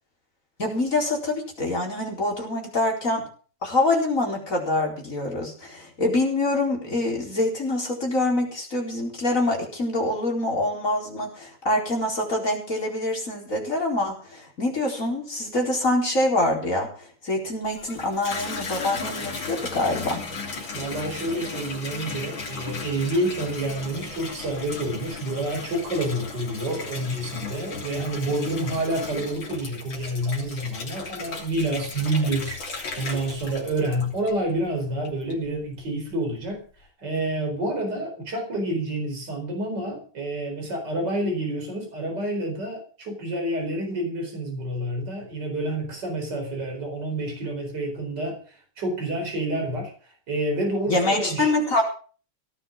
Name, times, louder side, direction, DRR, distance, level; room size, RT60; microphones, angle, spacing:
voice 1, 0.6-3.3 3.6-20.2 50.9-51.8, left 2 dB, 35° left, 4.7 m, -25 dB
Water tap faucet / Bathtub (filling or washing), 17.6-34.6 35.0-35.6, left 4 dB, 60° left, 4.0 m, -36 dB
voice 2, 20.7-36.6 37.0-48.4 48.8-49.9 50.3-51.5, right 1 dB, 50° right, 4.9 m, -28 dB
17.5 x 10.0 x 6.1 m
omnidirectional pair, 2.4 m